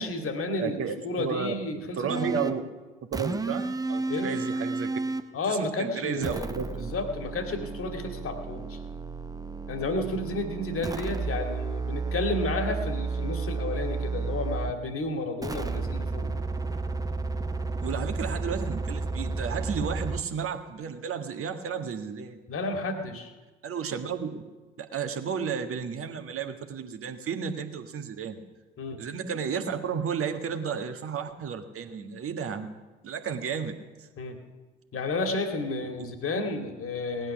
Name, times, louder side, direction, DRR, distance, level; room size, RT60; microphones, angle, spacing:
voice 1, 0.0-2.5 4.1-4.3 5.3-6.5 6.7-8.8 9.7-16.4 22.5-23.3 28.8-29.0 34.2-34.4 34.9-37.3, left 2 dB, 40° left, 5 dB, 2.3 m, -32 dB
voice 2, 0.6-1.5 2.0-2.7 3.1-4.9 5.5-6.9 17.8-22.4 23.6-24.4 24.8-28.4 29.0-32.8 33.0-34.1 36.0-36.1, right 6 dB, 40° right, 6 dB, 1.6 m, -33 dB
sound 1, 2.1-2.6 3.1-5.3 6.2-14.8 15.4-20.2, right 3 dB, 10° right, 0.7 m, -32 dB
18.5 x 11.0 x 6.1 m, 1.2 s
figure-of-eight pair, 50°, 33 cm